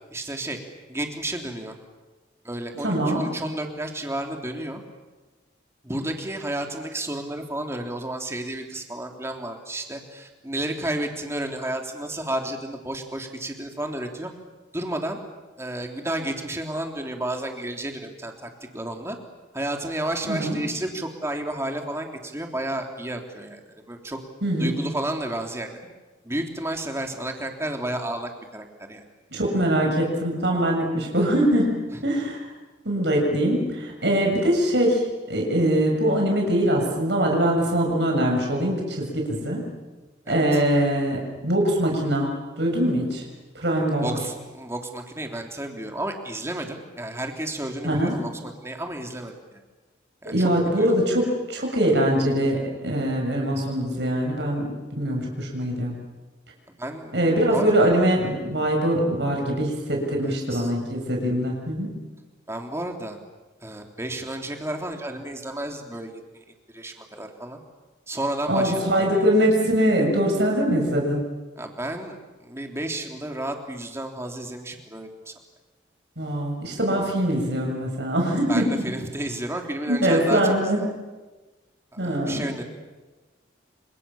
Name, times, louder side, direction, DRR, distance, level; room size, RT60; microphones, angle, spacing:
voice 1, 0.1-0.6 0.9-1.7 2.4-4.8 5.8-14.3 14.7-15.2 15.6-19.2 19.5-24.2 24.6-25.8 26.2-29.1 40.2-40.6 44.0-49.6 50.2-50.5 50.8-51.0 56.8-57.1 57.5-57.7 60.2-60.7 62.5-63.2 63.6-66.4 66.7-67.6 68.1-69.2 71.6-75.3 78.5-80.9 82.0-82.6, right 1 dB, 15° right, 3 dB, 3.3 m, -32 dB
voice 2, 2.8-3.2 20.3-20.6 24.4-24.7 29.3-31.8 32.0-32.4 32.9-39.6 40.3-43.2 43.6-44.1 47.8-48.2 50.3-55.9 57.1-61.9 68.5-71.2 76.2-78.7 79.9-80.9 82.0-82.5, right 1 dB, 70° right, 0 dB, 7.0 m, -23 dB
30.0 x 27.0 x 7.1 m, 1.2 s
head